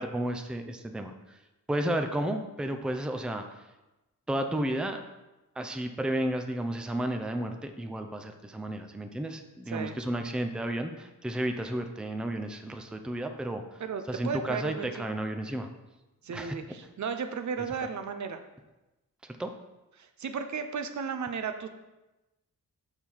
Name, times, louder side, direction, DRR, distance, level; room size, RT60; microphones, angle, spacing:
voice 1, 0.0-1.4 1.7-3.6 4.3-5.0 5.6-13.8 14.1-15.7 16.3-16.5 19.4-19.5, right 1 dB, 5° right, 6 dB, 0.5 m, -32 dB
voice 2, 9.7-10.0 13.8-15.1 16.2-18.4 20.0-21.7, right 6 dB, 60° right, 8 dB, 0.6 m, -34 dB
6.7 x 5.4 x 4.5 m, 1.0 s
wide cardioid pair, 115°, 33 cm